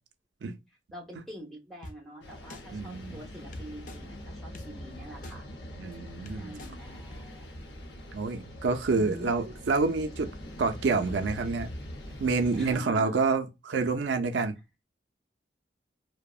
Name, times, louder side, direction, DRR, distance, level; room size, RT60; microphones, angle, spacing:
voice 1, 0.9-5.4 6.2-7.4 8.9-9.3 12.5-13.3, equal, ahead, 0.9 m, -44 dB
sound 1, 1.8-1.9 2.5-2.6 3.5-4.0 4.5-4.7 5.2-5.3 5.9-6.0 6.3-6.7 7.1-7.2, left 2 dB, 45° left, 0.4 m, -42 dB
sound 2, 2.2-12.8, equal, 75° left, 0.7 m, -43 dB
voice 2, 2.7-3.2 5.8-6.5 8.1-10.3 10.6-11.7 12.2-14.5, right 4 dB, 80° right, 0.4 m, -28 dB
2.7 x 2.0 x 2.3 m
head